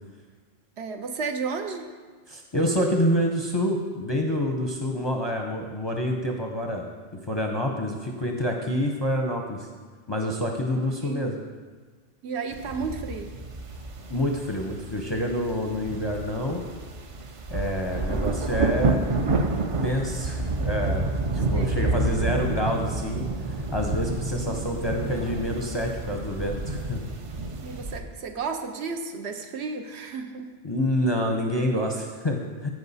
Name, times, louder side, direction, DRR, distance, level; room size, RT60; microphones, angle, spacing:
voice 1, 0.8-1.9 5.0-5.1 10.7-11.2 12.2-13.3 18.1-18.3 21.5-21.8 24.5-24.9 27.6-30.5, right 5 dB, 65° right, 6 dB, 0.9 m, -33 dB
voice 2, 2.3-6.9 7.3-9.7 10.1-11.4 14.1-16.6 17.5-19.0 19.8-21.1 21.3-23.3 23.7-27.1 30.6-32.7, equal, 30° left, 1 dB, 0.6 m, -27 dB
sound 1, 12.5-28.0, right 3 dB, 50° right, 0.4 m, -29 dB
14.0 x 4.8 x 4.1 m, 1.4 s
omnidirectional pair, 1.2 m